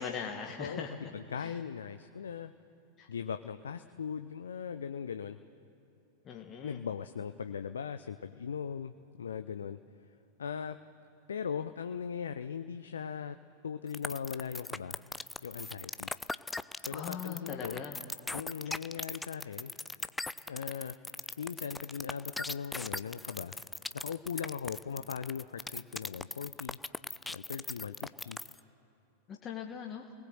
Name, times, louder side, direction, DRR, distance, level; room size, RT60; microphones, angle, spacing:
voice 1, 0.0-0.9 1.4-1.5 3.0-3.1 6.3-6.8 16.9-18.0 29.3-30.1, left 7 dB, 30° left, 1 dB, 1.8 m, -40 dB
voice 2, 1.1-2.5 3.1-5.4 6.6-9.8 10.4-10.8 11.3-13.4 13.6-15.0 15.4-16.1 16.8-17.8 18.3-19.7 20.5-21.0 21.4-23.6 23.9-26.8 27.3-28.4, left 7 dB, 70° left, 10 dB, 0.6 m, -39 dB
sound 1, 13.9-28.6, left 2 dB, 10° left, 0.6 m, -39 dB
30.0 x 19.5 x 7.9 m, 2.8 s
figure-of-eight pair, 90°, 0 cm